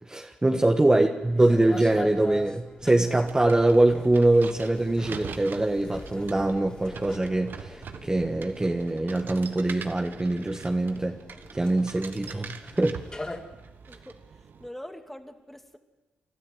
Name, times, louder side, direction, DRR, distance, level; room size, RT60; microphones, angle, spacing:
voice 1, 0.0-11.2 11.5-13.0, right 2 dB, 20° right, 3 dB, 1.5 m, -23 dB
sound 1, 1.2-13.4, left 2 dB, 25° left, 3.7 m, -43 dB
sound 2, 3.1-14.7, right 6 dB, 60° right, 1.3 m, -44 dB
voice 2, 13.9-15.8, left 1 dB, 5° left, 5 dB, 2.4 m, -43 dB
28.5 x 13.0 x 8.0 m, 1.2 s
supercardioid pair, 55°, 4 cm